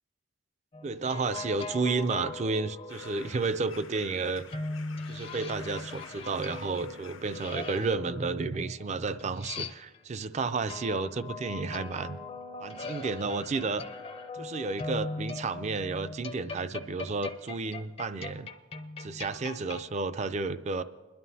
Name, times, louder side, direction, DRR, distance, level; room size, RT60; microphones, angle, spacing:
sound 1, 0.7-3.3 4.5-10.2 10.7-19.9, left 3 dB, 30° left, 0.5 m, -40 dB
voice 1, 0.8-4.5 5.1-12.2 12.6-13.8 14.3-18.5 19.0-20.8, right 4 dB, 35° right, 13 dB, 0.4 m, -32 dB
sound 2, 2.9-7.9, left 6 dB, 80° left, 0.8 m, -50 dB
30.0 x 11.0 x 2.7 m, 1.4 s
head